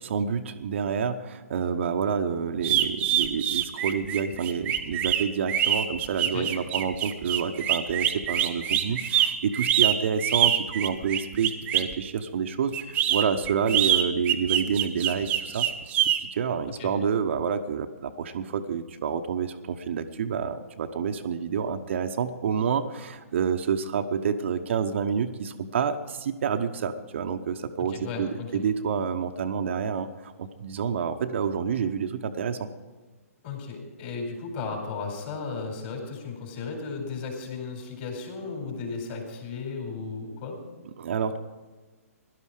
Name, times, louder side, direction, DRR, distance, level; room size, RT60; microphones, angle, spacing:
voice 1, 0.0-15.7 16.2-32.7 41.0-41.4, right 6 dB, 50° right, 6 dB, 0.9 m, -28 dB
sound 1, 2.6-11.9 12.7-16.2, right 11 dB, 20° right, 1.0 m, -24 dB
voice 2, 27.9-28.6 33.4-40.6, left 4 dB, 35° left, 2 dB, 4.3 m, -35 dB
17.0 x 12.0 x 4.9 m, 1.3 s
figure-of-eight pair, 130°, 8 cm